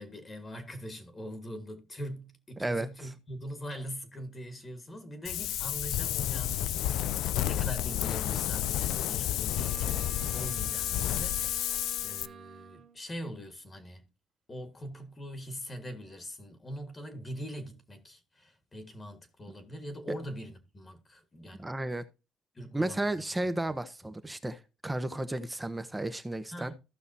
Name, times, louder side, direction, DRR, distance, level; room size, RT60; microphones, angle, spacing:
voice 1, 0.0-10.1 10.3-14.1 14.5-21.7 22.5-23.2 24.3-24.4 26.5-26.8, equal, 20° left, 1.6 m, -42 dB
voice 2, 2.6-3.1 21.6-22.0 22.7-26.7, right 1 dB, 10° right, 0.9 m, -33 dB
Wind, 5.3-12.3, left 13 dB, 75° left, 0.4 m, -31 dB
Wind instrument woodwind instrument, 9.5-13.0, right 8 dB, 55° right, 1.9 m, -48 dB
15.0 x 5.8 x 2.7 m
cardioid pair, 120°, 0 cm